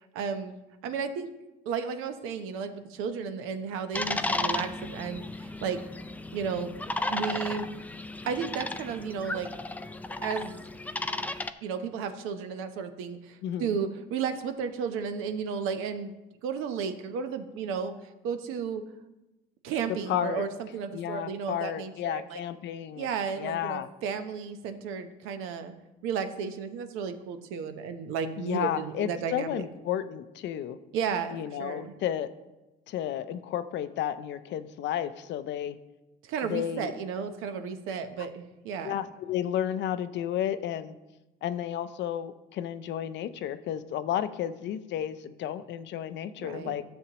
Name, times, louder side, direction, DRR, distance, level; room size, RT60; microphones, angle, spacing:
voice 1, 0.1-0.5 0.8-1.3 1.6-5.8 6.3-6.7 7.1-7.7 8.3-9.5 10.2-10.6 11.1-11.2 11.6-16.1 16.4-17.9 18.2-18.8 19.6-22.4 23.0-25.7 26.0-29.6 30.9-31.9 36.2-39.0 46.4-46.7, right 6 dB, 75° right, 8 dB, 0.9 m, -33 dB
sound 1, 3.9-11.5, left 2 dB, 5° left, 0.4 m, -34 dB
voice 2, 20.1-20.4 20.9-23.1 23.4-23.9 28.4-30.8 31.3-32.3 32.9-35.8 36.5-36.9 38.8-40.9 41.4-46.8, left 10 dB, 60° left, 12 dB, 0.6 m, -32 dB
12.5 x 7.1 x 2.9 m, 1.0 s
supercardioid pair, 95°, 21 cm